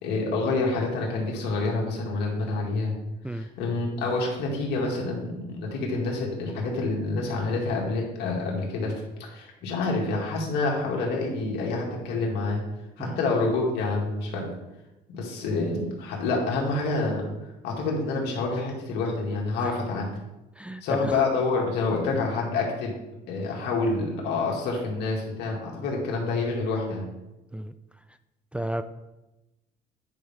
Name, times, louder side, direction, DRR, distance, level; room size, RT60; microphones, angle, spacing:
voice 1, 0.0-2.9 3.3-8.9 9.2-12.6 13.0-14.5 15.1-17.3 17.6-20.1 20.8-22.9 23.3-27.0, left 3 dB, 85° left, -2 dB, 2.2 m, -27 dB
voice 2, 20.6-21.1 27.5-27.7 28.5-28.8, right 1 dB, 5° right, 9 dB, 0.3 m, -32 dB
9.3 x 5.5 x 3.6 m, 0.98 s
cardioid pair, 110°, 17 cm